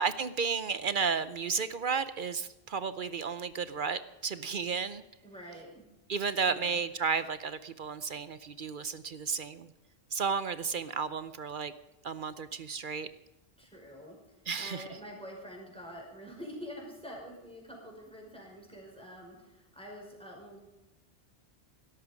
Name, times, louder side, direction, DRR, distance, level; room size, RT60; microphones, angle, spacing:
voice 1, 0.0-5.0 6.1-9.7 10.1-11.7 12.0-13.1 14.5-14.8, right 5 dB, 55° right, 14 dB, 0.8 m, -33 dB
voice 2, 5.2-5.8 6.5-6.8 13.6-14.2 14.6-20.6, equal, 5° left, -2 dB, 5.4 m, -46 dB
17.0 x 13.5 x 5.1 m, 0.99 s
omnidirectional pair, 1.1 m